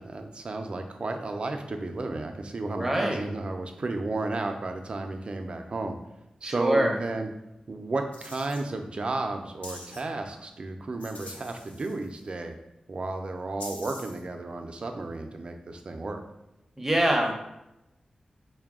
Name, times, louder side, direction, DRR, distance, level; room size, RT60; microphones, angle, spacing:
voice 1, 0.0-6.0 6.4-7.3 7.7-12.6 12.9-16.2, right 2 dB, 50° right, 5 dB, 0.4 m, -33 dB
voice 2, 2.7-3.2 6.4-6.9 16.8-17.3, right 1 dB, 10° right, 1 dB, 0.7 m, -24 dB
sound 1, 8.1-8.6 9.6-10.0 11.0-12.2 13.6-14.2, left 2 dB, 75° left, 0.7 m, -44 dB
4.7 x 2.2 x 3.5 m, 0.90 s
wide cardioid pair, 105°, 2 cm